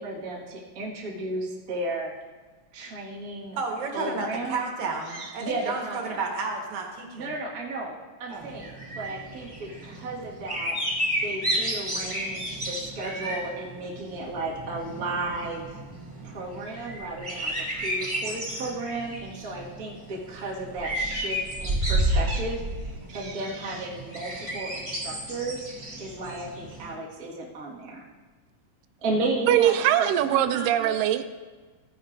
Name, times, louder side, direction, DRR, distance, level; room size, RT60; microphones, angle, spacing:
voice 1, 0.0-2.1 2.7-3.6 3.9-4.6 5.0-6.2 7.1-10.8 11.2-15.8 16.2-25.7 26.0-28.0 29.0-31.0, right 2 dB, 35° right, -4 dB, 1.8 m, -34 dB
voice 2, 3.6-7.3 8.3-8.5, right 3 dB, 65° right, 1 dB, 2.6 m, -31 dB
sound 1, 8.4-26.9, right 1 dB, 15° right, 3.3 m, -32 dB
voice 3, 29.5-31.3, right 12 dB, 90° right, 9 dB, 2.2 m, -22 dB
15.0 x 9.3 x 2.6 m, 1.3 s
omnidirectional pair, 3.8 m